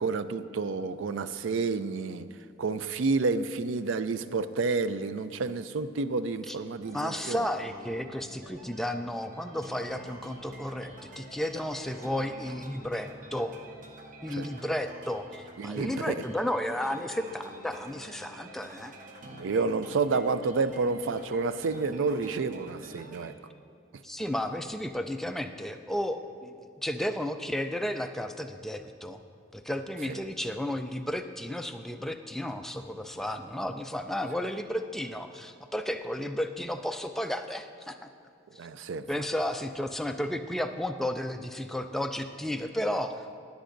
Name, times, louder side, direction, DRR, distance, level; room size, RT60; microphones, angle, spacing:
voice 1, 0.0-2.3 2.6-7.4 14.4-14.5 15.6-16.1 19.2-23.3 30.1-30.2 38.6-39.1, right 4 dB, 85° right, 13 dB, 0.4 m, -30 dB
voice 2, 6.5-13.6 14.2-18.9 24.0-29.2 29.5-38.0 38.5-38.6 39.1-43.3, left 1 dB, ahead, 6 dB, 0.3 m, -33 dB
sound 1, 6.8-23.3, right 1 dB, 40° right, 0.9 m, -48 dB
20.0 x 8.2 x 2.6 m, 2.4 s
head